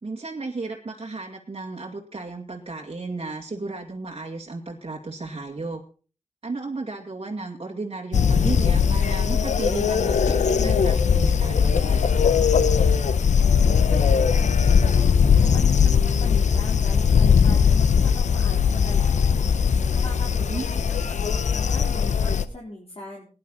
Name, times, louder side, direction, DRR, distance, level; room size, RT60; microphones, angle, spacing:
voice 1, 0.0-5.8 6.4-12.3 20.3-20.7, right 3 dB, 50° right, -1 dB, 2.3 m, -34 dB
sound 1, 8.1-22.4, left 6 dB, 85° left, 0.7 m, -19 dB
voice 2, 13.9-19.4 19.9-23.3, left 2 dB, 55° left, -3 dB, 4.1 m, -40 dB
18.0 x 11.0 x 4.2 m, 0.38 s
wide cardioid pair, 65°, 12 cm